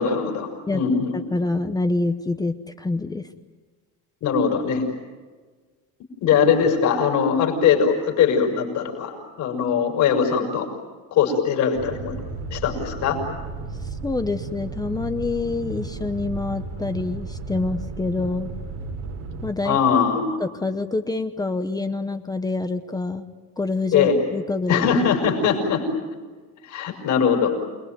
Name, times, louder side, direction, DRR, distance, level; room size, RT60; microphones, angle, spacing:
voice 1, 0.0-1.1 4.2-4.8 6.2-10.7 11.1-12.1 12.5-13.2 19.6-20.4 23.9-24.1 24.7-25.8 26.6-27.5, left 7 dB, 60° left, 2 dB, 5.9 m, -21 dB
voice 2, 1.1-3.3 14.0-18.5 19.4-19.8 20.4-23.3 23.6-24.8, left 3 dB, 10° left, 8 dB, 0.8 m, -26 dB
sound 1, 11.7-19.5, right 4 dB, 85° right, 3.4 m, -34 dB
28.5 x 21.0 x 9.3 m, 1.4 s
cardioid pair, 165°, 34 cm